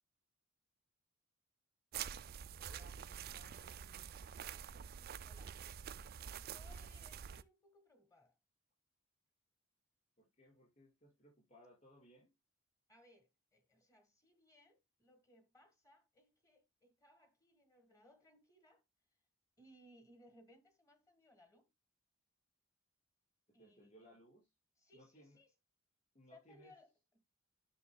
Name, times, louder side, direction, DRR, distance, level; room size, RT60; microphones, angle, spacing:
sound 1, 1.9-7.4, right 8 dB, 45° right, 0.4 m, -47 dB
voice 1, 2.6-4.1 10.2-12.3 23.5-24.5 24.9-25.4 26.1-26.7, equal, 35° left, 5.9 m, -64 dB
voice 2, 5.2-5.6 6.3-8.4 12.9-18.8 19.6-21.7 23.5-24.2 24.8-25.5 26.3-27.2, left 1 dB, 15° left, 1.4 m, -66 dB
10.5 x 6.3 x 2.2 m
head